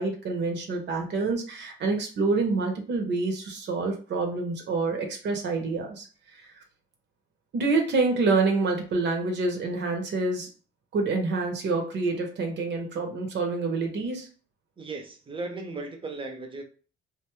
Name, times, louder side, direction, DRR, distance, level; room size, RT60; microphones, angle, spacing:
voice 1, 0.0-6.1 6.4-6.5 7.5-10.5 10.9-14.3, right 3 dB, 60° right, 2 dB, 0.8 m, -27 dB
voice 2, 14.8-16.6, right 3 dB, 25° right, 4 dB, 0.7 m, -36 dB
2.5 x 2.3 x 3.0 m, 0.39 s
cardioid pair, 90°, 20 cm